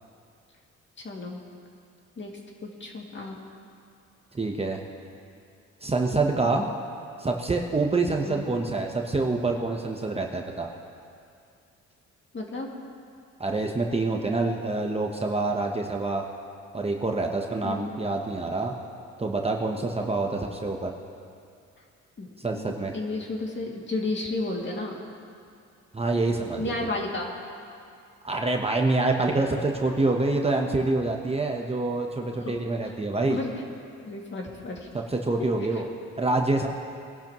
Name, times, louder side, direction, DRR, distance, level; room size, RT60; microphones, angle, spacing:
voice 1, 1.0-1.4 2.2-2.3 2.8-3.4 6.4-6.7 8.2-8.5 12.3-12.7 17.6-17.9 22.2-25.0 26.6-27.4 32.4-32.5 32.8-32.9 33.3-33.5 34.0-34.9 35.7-35.8, left 2 dB, 40° left, -1 dB, 2.4 m, -32 dB
voice 2, 4.3-4.8 5.8-6.6 7.2-10.7 13.4-16.2 16.7-18.7 19.2-20.9 22.4-22.9 25.9-26.7 28.2-33.4 34.9-35.9 36.2-36.7, right 3 dB, 20° right, 1 dB, 1.0 m, -26 dB
23.0 x 11.5 x 3.1 m, 2.4 s
cardioid pair, 90°, 30 cm